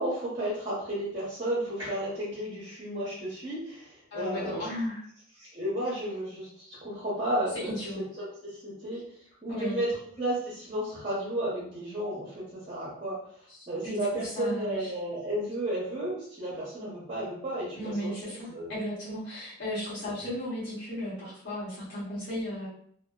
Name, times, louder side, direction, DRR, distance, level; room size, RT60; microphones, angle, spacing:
voice 1, 0.0-4.7 5.4-7.7 8.2-9.1 9.4-13.3 13.7-18.1 18.4-18.8, right 1 dB, 25° right, -7 dB, 0.7 m, -33 dB
voice 2, 4.1-5.0 7.6-8.0 9.5-9.8 13.8-14.9 17.8-22.7, left 1 dB, 55° left, -10 dB, 1.2 m, -35 dB
2.6 x 2.2 x 2.2 m, 0.63 s
head